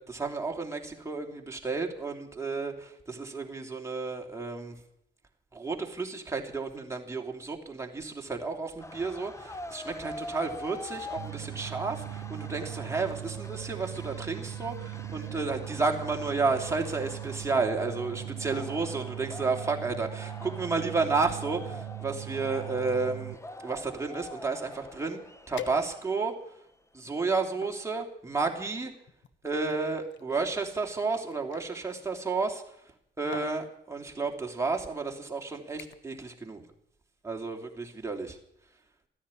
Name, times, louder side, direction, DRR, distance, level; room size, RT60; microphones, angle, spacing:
voice 1, 0.0-4.8 5.5-25.2 25.5-26.3 26.9-28.9 29.4-32.6 33.2-36.6 37.2-38.4, right 4 dB, 15° right, 1 dB, 3.0 m, -32 dB
sound 1, 8.8-26.6, left 1 dB, 15° left, 1.1 m, -45 dB
sound 2, 11.2-23.3, right 15 dB, 90° right, 0.7 m, -40 dB
sound 3, 25.6-26.3 26.9-27.8 28.8-31.7 32.8-33.0 33.3-33.6 34.5-34.7 35.1-35.4 35.8-36.2 36.5-36.9 37.2-37.3, left 9 dB, 70° left, 1.2 m, -47 dB
14.5 x 10.0 x 9.8 m, 0.75 s
cardioid pair, 90°, 20 cm